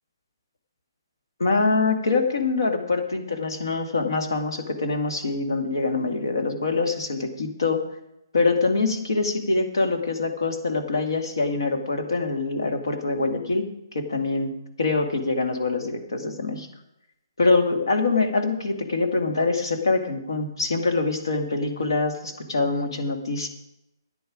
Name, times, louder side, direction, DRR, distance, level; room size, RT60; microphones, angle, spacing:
voice 1, 1.4-7.8 8.3-13.7 13.9-14.5 14.8-16.7 17.4-23.5, left 3 dB, 70° left, 4 dB, 2.2 m, -24 dB
13.0 x 9.8 x 5.0 m, 0.84 s
figure-of-eight pair, 135°, 2 cm